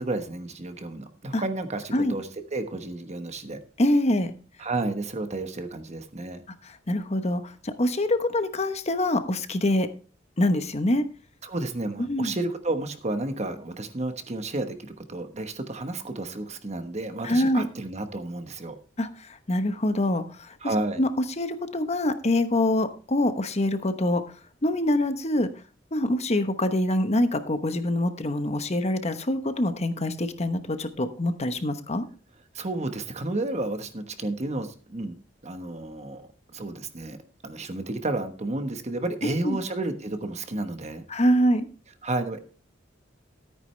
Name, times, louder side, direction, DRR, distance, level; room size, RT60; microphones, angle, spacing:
voice 1, 0.0-3.6 4.6-6.4 11.4-18.8 20.6-21.0 32.5-35.2 35.4-37.2 37.4-41.0 42.0-42.4, right 2 dB, 35° right, 8 dB, 1.2 m, -31 dB
voice 2, 3.8-4.3 6.6-9.9 10.4-11.0 12.0-12.3 17.2-17.7 19.0-20.5 21.0-21.1 21.4-24.2 24.6-25.5 25.9-32.1 39.2-39.6 41.1-41.7, left 1 dB, 35° left, 10 dB, 1.0 m, -25 dB
13.5 x 9.1 x 3.3 m, 0.37 s
head